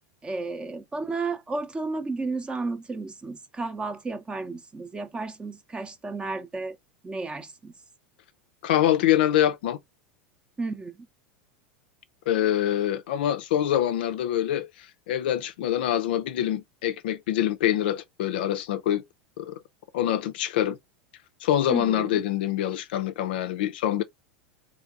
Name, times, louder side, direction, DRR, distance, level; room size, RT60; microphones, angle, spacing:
voice 1, 0.2-6.8 7.0-7.7 10.6-11.1 21.7-22.2, right 3 dB, 15° right, 0.6 m, -33 dB
voice 2, 8.6-9.8 12.3-14.7 15.1-19.0 19.4-19.6 19.9-20.8 21.4-24.0, left 11 dB, 70° left, 0.4 m, -25 dB
3.4 x 3.1 x 2.4 m
hypercardioid pair, 95°, 6 cm